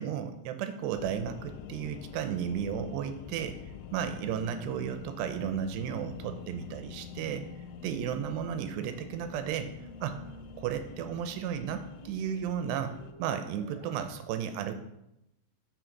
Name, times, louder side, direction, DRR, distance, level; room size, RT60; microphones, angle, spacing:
voice 1, 0.0-7.4 7.8-9.7 10.0-10.2 10.6-14.7, right 8 dB, 80° right, 8 dB, 2.7 m, -34 dB
sound 1, 0.9-13.1, left 8 dB, 85° left, 2.4 m, -46 dB
sound 2, 6.1-14.1, left 2 dB, 30° right, 1.7 m, -52 dB
6.4 x 6.3 x 4.5 m, 0.84 s
omnidirectional pair, 5.0 m